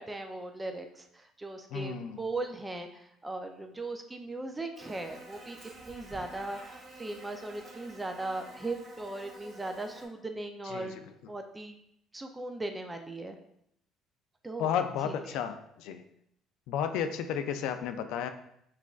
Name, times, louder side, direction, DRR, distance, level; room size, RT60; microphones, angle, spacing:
voice 1, 0.0-5.6 5.9-11.0 11.3-11.8 12.1-13.4 14.4-14.7 15.0-15.4, right 2 dB, 15° right, 5 dB, 0.4 m, -38 dB
voice 2, 1.7-2.2 10.7-11.0 14.6-16.0 16.7-18.3, left 8 dB, 80° left, 8 dB, 0.3 m, -33 dB
Buzz, 4.8-10.1, right 2 dB, 40° right, 1.5 m, -49 dB
5.6 x 2.4 x 2.3 m, 0.74 s
cardioid pair, 110°, 0 cm